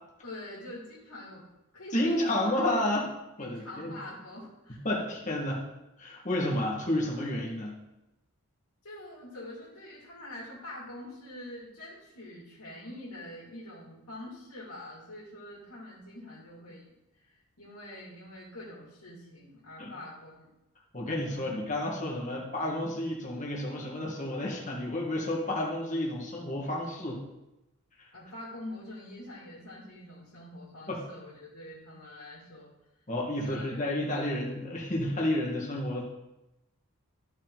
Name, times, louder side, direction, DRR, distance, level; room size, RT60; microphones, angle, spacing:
voice 1, 0.2-1.4 1.7-2.7 3.4-4.8 8.8-20.5 21.3-21.6 28.1-32.7 33.3-33.8, left 1 dB, 85° left, -7 dB, 2.5 m, -45 dB
voice 2, 1.9-3.1 3.4-4.0 4.8-5.6 6.0-7.8 19.8-19.9 20.9-27.2 28.0-28.1 30.9-31.0 33.1-36.0, left 1 dB, 35° left, -3 dB, 1.8 m, -31 dB
13.5 x 4.9 x 3.9 m, 0.94 s
head